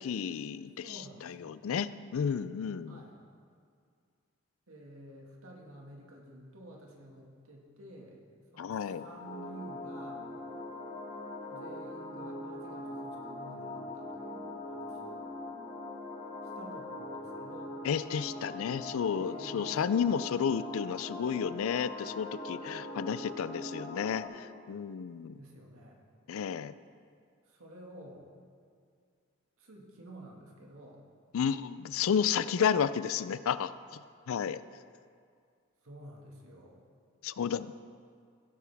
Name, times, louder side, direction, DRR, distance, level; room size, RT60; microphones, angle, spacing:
voice 1, 0.0-3.0 8.6-9.1 17.8-25.4 26.3-26.7 31.3-33.7 34.3-34.6 37.2-37.8, left 7 dB, 80° left, 15 dB, 0.4 m, -32 dB
voice 2, 0.8-1.3 2.9-3.2 4.7-8.2 8.5-10.4 11.5-15.2 16.6-17.9 19.1-20.4 25.3-26.0 27.5-28.3 29.6-31.0 32.3-32.4 35.8-36.9, right 1 dB, 90° right, -1 dB, 1.9 m, -51 dB
sound 1, 8.9-24.3, left 1 dB, 45° left, 2.1 m, -42 dB
17.0 x 8.4 x 3.5 m, 2.2 s
head